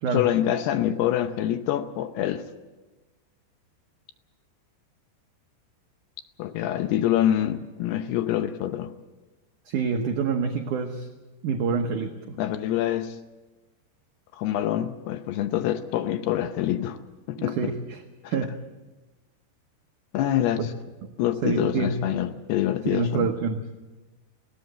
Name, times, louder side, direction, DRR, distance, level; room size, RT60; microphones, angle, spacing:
voice 1, 0.1-2.4 6.4-8.9 12.4-13.2 14.3-17.0 17.3-17.7 18.2-18.3 20.1-20.7 21.2-23.3, left 12 dB, 75° left, 9 dB, 2.6 m, -26 dB
voice 2, 9.7-11.1 11.4-12.4 17.4-18.6 20.6-20.7 21.0-21.1 21.4-22.2 22.9-23.6, right 5 dB, 85° right, 4 dB, 1.8 m, -27 dB
20.0 x 17.5 x 7.9 m, 1.1 s
omnidirectional pair, 5.2 m